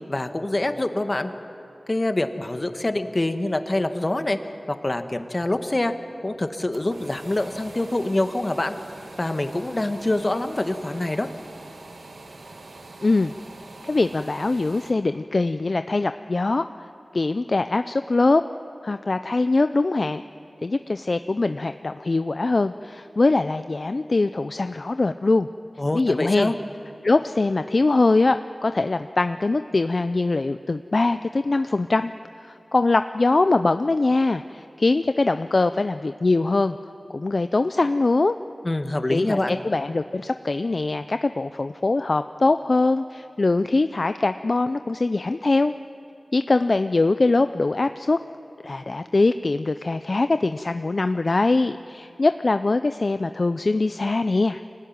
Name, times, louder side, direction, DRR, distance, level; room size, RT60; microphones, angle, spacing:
voice 1, 0.1-1.3 1.9-4.4 4.7-5.9 6.2-8.7 9.2-11.3 25.8-26.6 38.6-39.6, left 2 dB, 40° left, 7 dB, 1.5 m, -25 dB
sound 1, 6.5-14.9, right 2 dB, 85° right, 1.9 m, -44 dB
voice 2, 13.0-13.3 13.8-16.7 17.1-18.4 18.8-20.2 20.6-25.5 25.9-26.5 27.0-32.1 32.4-36.8 37.1-38.4 39.1-45.7 46.3-48.2 48.6-54.6, left 3 dB, 60° left, 10 dB, 0.5 m, -22 dB
24.0 x 19.0 x 9.5 m, 2.7 s
cardioid pair, 40°, 0 cm